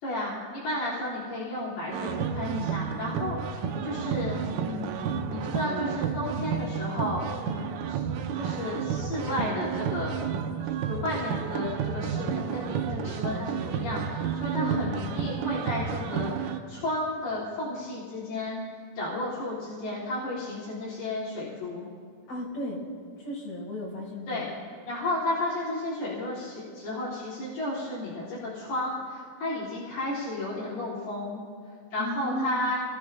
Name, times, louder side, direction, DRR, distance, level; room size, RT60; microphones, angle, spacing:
voice 1, 0.0-7.6 7.9-8.0 8.4-10.1 10.6-18.6 19.0-21.9 24.3-24.5 24.9-31.4 31.9-32.8, left 1 dB, 75° left, -9 dB, 4.4 m, -33 dB
sound 1, 1.9-16.6, right 7 dB, 90° right, 1.8 m, -31 dB
voice 2, 14.6-15.0 22.3-22.8 23.2-24.4 32.0-32.7, equal, 50° left, -4 dB, 6.0 m, -35 dB
26.0 x 18.5 x 2.3 m, 2.1 s
omnidirectional pair, 4.5 m